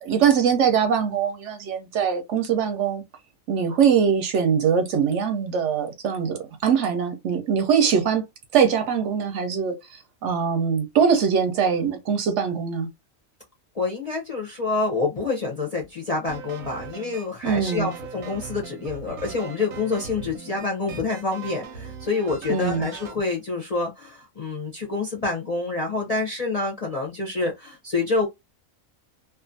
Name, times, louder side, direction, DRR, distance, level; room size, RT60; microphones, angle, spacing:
voice 1, 0.0-3.0 3.5-8.2 8.5-12.9 17.4-17.9 22.5-22.9, right 7 dB, 70° right, 0.8 m, -22 dB
voice 2, 13.7-28.3, left 3 dB, 45° left, 0.5 m, -27 dB
sound 1, 16.3-23.2, right 6 dB, 85° right, 1.0 m, -39 dB
2.4 x 2.4 x 2.5 m
omnidirectional pair, 1.4 m